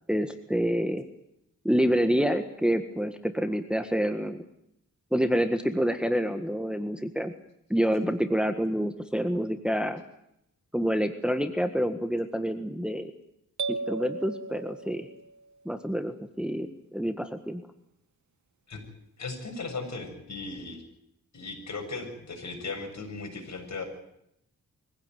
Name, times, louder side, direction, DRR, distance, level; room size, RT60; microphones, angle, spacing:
voice 1, 0.1-1.0 1.6-4.4 5.1-7.3 7.7-10.0 10.7-13.1 13.7-15.1 15.6-17.6, equal, 5° right, 7 dB, 1.6 m, -27 dB
sound 1, 13.6-15.5, right 4 dB, 60° right, 1.1 m, -35 dB
voice 2, 19.2-20.8 21.3-23.8, left 3 dB, 60° left, 4 dB, 7.1 m, -37 dB
23.5 x 16.5 x 9.3 m, 0.78 s
wide cardioid pair, 95°, 32 cm